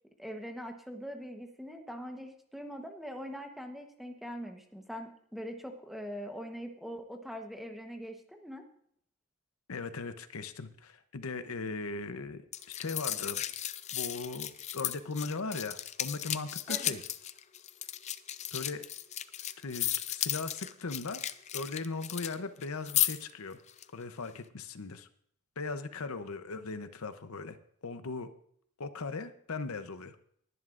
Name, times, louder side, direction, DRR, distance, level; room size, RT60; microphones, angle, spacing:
voice 1, 0.2-8.6 16.7-17.0, equal, ahead, 4 dB, 1.0 m, -42 dB
voice 2, 9.7-13.4 13.9-17.0 18.5-18.8 19.6-21.2 21.5-23.6 23.9-25.1 25.6-27.6 27.8-28.3 28.8-30.2, left 3 dB, 80° left, 10 dB, 0.8 m, -38 dB
sound 1, 12.5-22.3 22.6-23.3 23.7-23.8, left 12 dB, 30° left, 0.4 m, -35 dB
20.5 x 11.0 x 2.5 m, 0.66 s
head